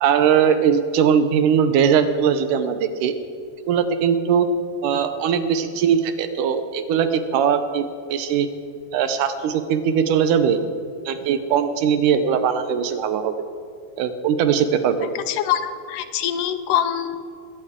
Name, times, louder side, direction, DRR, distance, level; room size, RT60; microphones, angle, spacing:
voice 1, 0.0-3.1 3.7-4.5 4.8-8.5 8.9-10.6 11.1-13.5 14.0-15.1, right 7 dB, 80° right, 9 dB, 2.4 m, -20 dB
voice 2, 15.2-17.4, left 10 dB, 85° left, 11 dB, 2.3 m, -24 dB
21.0 x 17.5 x 3.7 m, 2.3 s
omnidirectional pair, 3.8 m